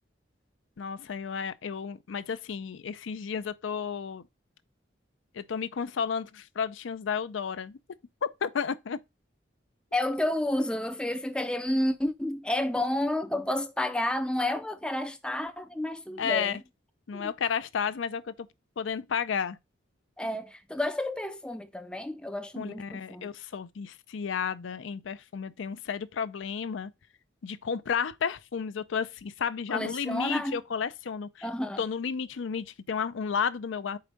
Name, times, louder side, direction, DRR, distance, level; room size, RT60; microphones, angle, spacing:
voice 1, 0.8-4.2 5.3-7.8 8.4-9.0 16.2-16.6 17.1-18.3 18.8-19.6 22.5-26.9 27.4-31.5 31.8-34.0, left 6 dB, 85° left, 0.5 m, -32 dB
voice 2, 9.9-16.6 17.1-17.3 20.2-23.3 29.7-30.6 31.4-31.8, left 1 dB, 5° left, 0.4 m, -30 dB
4.8 x 4.3 x 5.0 m
head